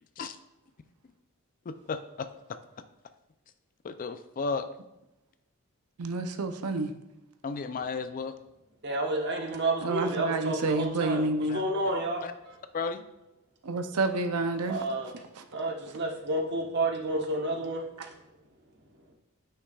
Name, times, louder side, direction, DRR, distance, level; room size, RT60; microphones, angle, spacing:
voice 1, 1.7-2.6 3.8-4.7 7.4-8.3 11.5-11.6 12.2-12.3 12.7-13.0, left 4 dB, 40° left, 10 dB, 0.4 m, -34 dB
voice 2, 6.0-6.9 9.8-11.6 13.6-14.9 15.4-15.5, right 3 dB, 85° right, 7 dB, 0.6 m, -29 dB
voice 3, 8.8-12.2 14.7-15.1 15.5-17.8, right 2 dB, 50° right, 1 dB, 1.1 m, -30 dB
9.7 x 5.7 x 2.3 m, 0.91 s
head